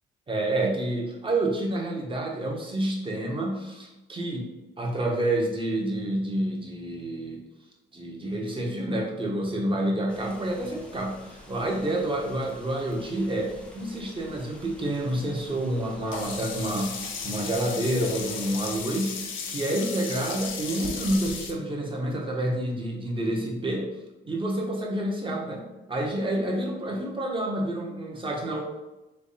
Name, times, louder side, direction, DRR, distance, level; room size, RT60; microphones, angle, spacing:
voice 1, 0.3-4.5 4.8-7.4 7.9-23.9 24.3-25.6 25.9-28.6, right 1 dB, 25° right, -1 dB, 1.1 m, -28 dB
sound 1, 10.1-18.8, left 1 dB, 5° left, 0.8 m, -49 dB
Sink (filling or washing), 16.1-21.5, left 5 dB, 75° left, 0.8 m, -35 dB
3.5 x 3.2 x 4.1 m, 1.0 s
cardioid pair, 90°, 20 cm